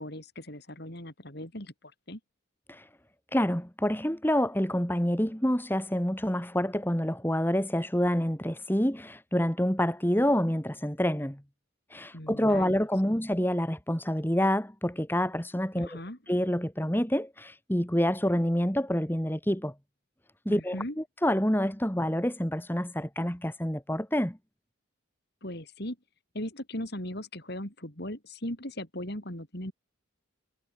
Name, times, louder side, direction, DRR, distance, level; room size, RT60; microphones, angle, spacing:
voice 1, 0.0-1.7 2.1-2.2 12.1-13.2 15.8-16.2 20.5-21.0 25.4-26.0 26.3-29.7, left 1 dB, 50° left, 5.6 m, -38 dB
voice 2, 3.3-11.4 11.9-16.0 16.3-19.7 20.5-24.4, equal, 10° left, 2.7 m, -27 dB
head